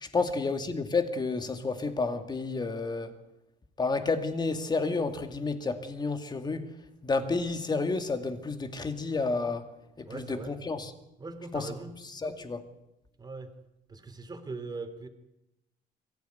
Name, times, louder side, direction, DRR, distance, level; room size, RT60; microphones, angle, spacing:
voice 1, 0.0-3.2 3.8-6.7 7.0-9.7 10.0-10.9 11.5-11.7 12.2-12.6, left 3 dB, 25° left, 2.4 m, -30 dB
voice 2, 10.1-10.5 11.2-12.0 13.2-13.5 13.9-15.1, right 3 dB, 25° right, 3.2 m, -40 dB
22.0 x 15.5 x 9.5 m
cardioid pair, 110°, 17 cm